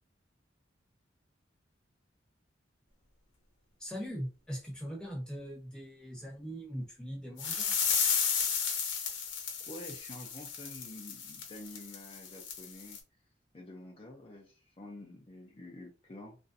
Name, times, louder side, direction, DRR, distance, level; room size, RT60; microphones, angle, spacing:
voice 1, 3.8-7.8, equal, 5° left, 0.9 m, -41 dB
sound 1, 7.4-13.0, left 6 dB, 80° left, 0.8 m, -33 dB
voice 2, 9.7-13.0 13.5-16.4, left 1 dB, 30° left, 0.5 m, -48 dB
3.0 x 2.5 x 2.6 m
head